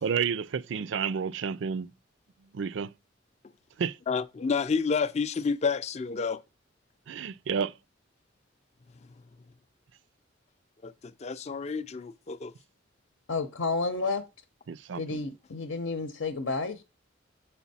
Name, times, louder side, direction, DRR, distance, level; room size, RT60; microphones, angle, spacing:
voice 1, 0.0-1.9 2.4-2.9 3.8-4.0 7.1-7.8 14.7-15.2, right 6 dB, 70° right, 0.4 m, -31 dB
voice 2, 4.1-6.4 10.8-12.5, left 5 dB, 35° left, 0.4 m, -29 dB
voice 3, 13.3-14.2 15.0-16.8, left 3 dB, 90° left, 0.8 m, -31 dB
7.0 x 4.5 x 4.1 m
head